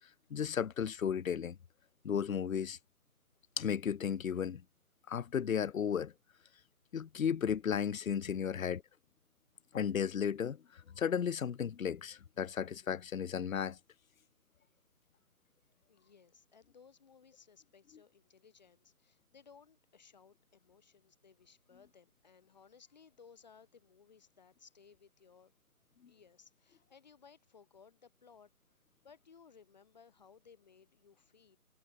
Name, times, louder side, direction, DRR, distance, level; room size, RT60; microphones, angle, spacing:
voice 1, 0.3-1.6 2.0-2.8 3.6-4.6 5.1-6.1 6.9-8.8 9.7-13.8, left 8 dB, 65° left, 0.6 m, -34 dB
voice 2, 15.9-25.6 26.1-28.8 29.0-31.6, left 6 dB, 30° left, 7.3 m, -61 dB
figure-of-eight pair, 175°, 45 cm